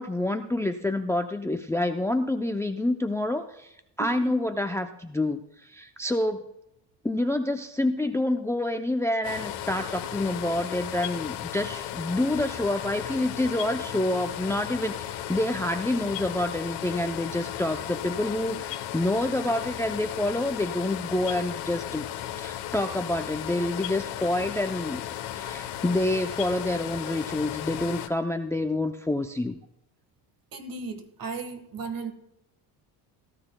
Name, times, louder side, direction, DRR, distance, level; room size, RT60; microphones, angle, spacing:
voice 1, 0.0-3.7 4.0-6.4 7.0-22.0 22.3-25.0 25.3-29.6 31.8-31.9, left 1 dB, 5° left, 7 dB, 0.5 m, -28 dB
voice 2, 4.0-4.3 30.5-32.1, right 4 dB, 50° right, 9 dB, 1.5 m, -36 dB
sound 1, 9.2-28.1, left 12 dB, 80° left, 1.1 m, -35 dB
18.0 x 12.5 x 2.2 m, 0.83 s
cardioid pair, 95°, 42 cm